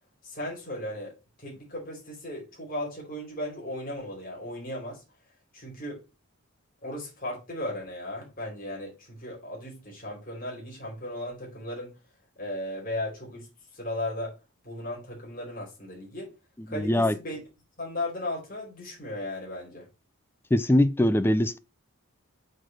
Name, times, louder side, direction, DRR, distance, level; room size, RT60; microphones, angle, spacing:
voice 1, 0.2-5.0 5.5-6.0 6.8-12.0 12.4-14.4 14.6-16.3 16.7-17.4 17.8-19.9, left 1 dB, 40° left, 4.3 m, -36 dB
voice 2, 16.7-17.1 20.5-21.6, left 1 dB, 10° left, 0.4 m, -22 dB
6.5 x 4.5 x 6.2 m
head